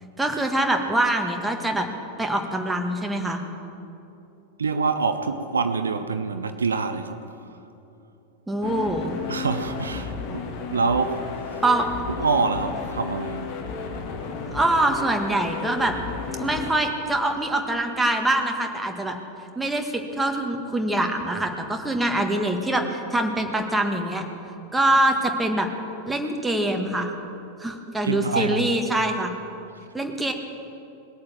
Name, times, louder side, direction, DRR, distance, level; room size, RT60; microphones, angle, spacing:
voice 1, 0.2-1.9 2.2-3.4 8.5-9.2 11.6-11.9 14.5-15.9 16.4-19.1 19.5-24.2 24.7-25.7 26.1-27.1 27.6-29.3 29.9-30.3, right 1 dB, 5° right, 3 dB, 1.6 m, -24 dB
voice 2, 4.6-7.2 9.3-11.5 12.1-13.5 28.0-28.6, right 4 dB, 75° right, 8 dB, 0.8 m, -26 dB
sound 1, 8.6-16.7, left 5 dB, 45° left, 1.8 m, -33 dB
20.5 x 8.6 x 7.3 m, 2.8 s
figure-of-eight pair, 90°, 0 cm